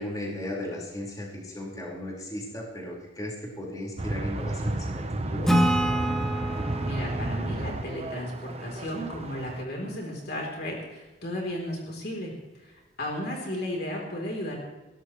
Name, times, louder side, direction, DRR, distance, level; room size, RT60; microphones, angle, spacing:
voice 1, 0.0-5.5, left 1 dB, 20° left, -3 dB, 4.6 m, -36 dB
sound 1, 4.0-9.6, right 2 dB, 35° right, 0.9 m, -32 dB
Acoustic guitar / Strum, 5.5-8.9, right 1 dB, ahead, 2.0 m, -28 dB
voice 2, 6.8-12.3 12.6-14.6, left 1 dB, 55° left, -1 dB, 3.5 m, -34 dB
22.0 x 18.0 x 3.2 m, 1.1 s
head